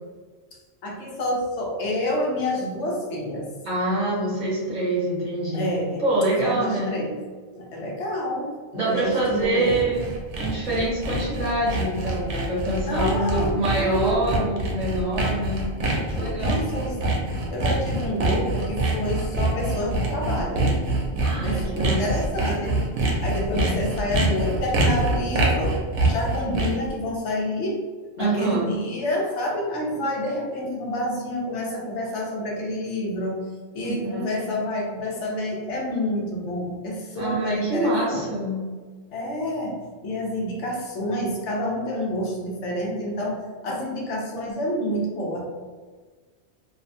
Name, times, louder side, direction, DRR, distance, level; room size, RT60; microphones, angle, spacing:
voice 1, 0.8-3.5 5.5-6.0 6.4-7.2 7.5-9.8 12.9-14.2 16.4-17.0 17.5-20.8 21.4-22.8 23.2-25.8 26.0-27.8 28.2-33.4 33.7-38.3 39.1-39.8 40.0-45.5, left 1 dB, 80° left, -3 dB, 1.0 m, -28 dB
voice 2, 3.6-5.7 6.0-6.9 8.7-15.6 16.1-16.6 21.2-22.0 23.5-23.8 28.2-28.6 33.8-34.5 37.2-38.7, right 1 dB, 45° right, -7 dB, 0.9 m, -26 dB
Sawing, 9.1-26.9, right 2 dB, 80° right, 0.9 m, -25 dB
2.7 x 2.1 x 2.6 m, 1.4 s
omnidirectional pair, 1.2 m